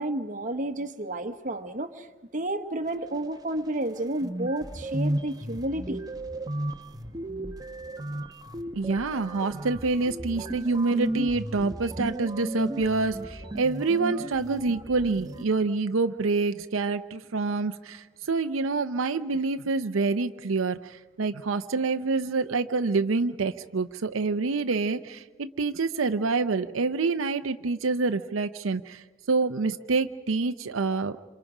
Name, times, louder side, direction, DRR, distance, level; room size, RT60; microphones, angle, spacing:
voice 1, 0.0-2.1 2.3-6.0, right 1 dB, 40° right, 7 dB, 1.1 m, -31 dB
sound 1, 3.9-4.0 4.2-15.4, right 1 dB, 20° right, 0.8 m, -34 dB
voice 2, 8.7-31.2, right 3 dB, 80° right, 9 dB, 0.6 m, -27 dB
27.0 x 27.0 x 4.9 m, 1.2 s
head